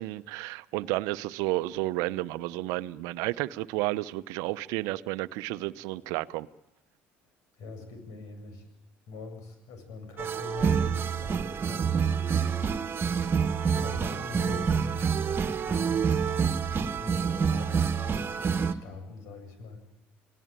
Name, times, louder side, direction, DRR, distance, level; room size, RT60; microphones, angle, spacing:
voice 1, 0.0-6.5, right 18 dB, 75° right, 0.8 m, -31 dB
voice 2, 7.6-8.6 9.1-11.9 13.7-15.0 15.4-16.0 17.0-17.8 18.7-19.8, left 4 dB, 70° left, 7.7 m, -43 dB
sound 1, 10.2-18.7, right 6 dB, 40° right, 1.7 m, -27 dB
29.5 x 18.5 x 9.1 m
hypercardioid pair, 70°, 6 cm